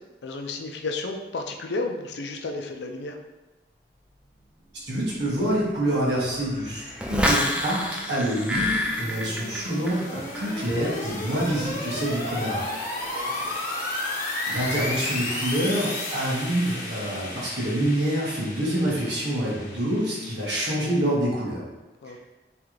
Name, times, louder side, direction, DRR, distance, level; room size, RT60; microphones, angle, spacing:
voice 1, 0.2-3.2 13.0-13.6 22.0-22.2, left 3 dB, 85° left, 3 dB, 0.5 m, -33 dB
voice 2, 4.9-12.7 13.4-13.6 14.5-21.6, right 1 dB, 85° right, -6 dB, 1.4 m, -26 dB
sound 1, 5.2-21.1, left 2 dB, 50° left, 0.8 m, -34 dB
sound 2, 7.0-10.1 10.4-10.8, left 1 dB, 5° right, 0.4 m, -27 dB
3.8 x 3.2 x 3.1 m, 1.1 s
head